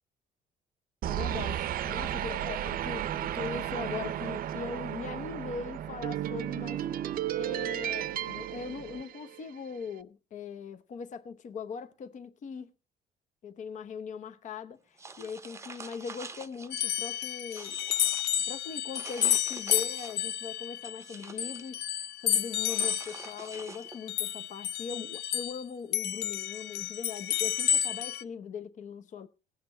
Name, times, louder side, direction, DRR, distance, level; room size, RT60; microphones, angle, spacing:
voice 1, 1.0-6.9 7.3-12.7 13.4-17.8 18.4-29.3, left 6 dB, 45° left, 0.8 m, -40 dB
sound 1, 1.0-9.6, right 11 dB, 60° right, 0.6 m, -34 dB
sound 2, 15.0-16.8 17.2-18.4 18.9-20.3 20.6-21.7 22.6-24.1, right 4 dB, 15° right, 0.7 m, -46 dB
sound 3, 16.7-25.6 25.9-28.2, left 11 dB, 75° left, 0.5 m, -31 dB
18.5 x 6.7 x 4.3 m
cardioid pair, 110°, 17 cm